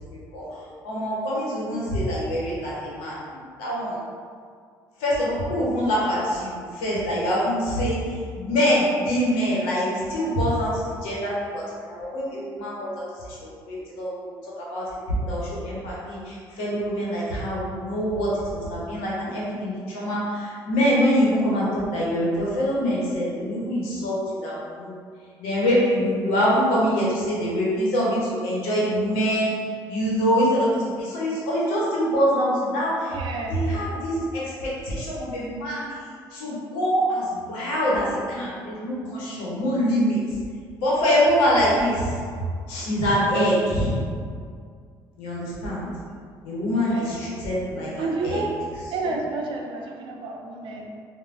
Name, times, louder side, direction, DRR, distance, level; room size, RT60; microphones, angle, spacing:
voice 1, 0.0-4.0 5.0-25.0 25.4-33.2 33.5-40.2 40.8-42.3 42.7-44.0 45.2-45.9 46.4-48.4 49.0-49.1, equal, 85° left, -6 dB, 0.8 m, -25 dB
voice 2, 33.1-33.6 42.3-42.4 46.7-47.2 48.0-48.5 48.9-50.9, right 3 dB, 65° right, 1 dB, 0.4 m, -30 dB
3.1 x 2.1 x 2.4 m, 2.1 s
supercardioid pair, 75°, 9 cm